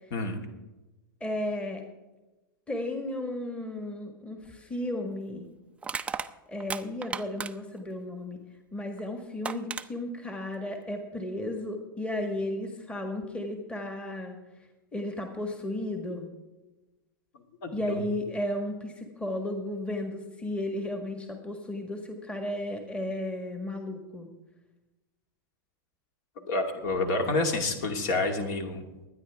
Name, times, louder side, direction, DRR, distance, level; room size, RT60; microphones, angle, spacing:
voice 1, 1.2-1.8 2.7-5.5 6.5-8.4 8.7-14.4 14.9-16.3 17.7-24.3, left 1 dB, 10° left, 3 dB, 1.6 m, -34 dB
Crushing, 4.4-4.6 5.8-7.8 9.0-9.1 9.4-9.9, right 5 dB, 10° right, 0.5 m, -35 dB
voice 2, 17.6-18.0 26.5-28.8, left 2 dB, 55° left, 4 dB, 2.4 m, -28 dB
22.0 x 9.8 x 3.6 m, 1.1 s
hypercardioid pair, 125°, 12 cm